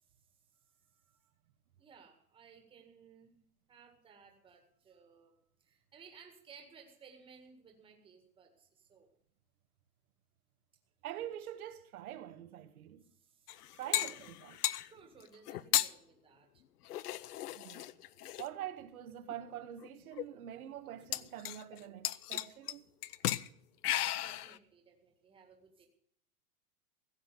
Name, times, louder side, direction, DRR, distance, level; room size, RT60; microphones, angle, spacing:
voice 1, 1.8-3.4 3.7-9.1 13.1-14.1 14.6-16.6 24.2-25.9, right 6 dB, 10° right, 1.8 m, -59 dB
voice 2, 11.0-13.1 13.7-14.7 17.5-17.9 18.4-22.8, right 11 dB, 65° right, 1.4 m, -45 dB
sound 1, 13.5-14.9 15.5-15.9 16.9-18.5 19.3-19.4 19.8-19.9 20.1-20.2 21.1-21.8 22.0-22.7 23.0-23.5 23.8-24.6, left 13 dB, 80° left, 0.8 m, -35 dB
15.5 x 7.9 x 6.7 m
supercardioid pair, 165°, 45 cm